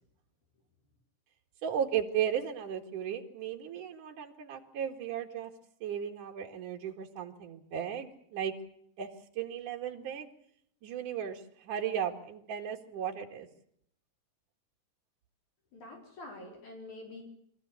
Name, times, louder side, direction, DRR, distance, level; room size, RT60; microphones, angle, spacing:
voice 1, 1.6-5.5 5.8-8.5 9.0-9.1 9.3-10.3 10.8-13.5, right 9 dB, 70° right, 3 dB, 3.4 m, -35 dB
voice 2, 15.7-17.2, left 2 dB, 60° left, 1 dB, 5.7 m, -46 dB
25.5 x 15.0 x 8.4 m, 0.69 s
omnidirectional pair, 3.8 m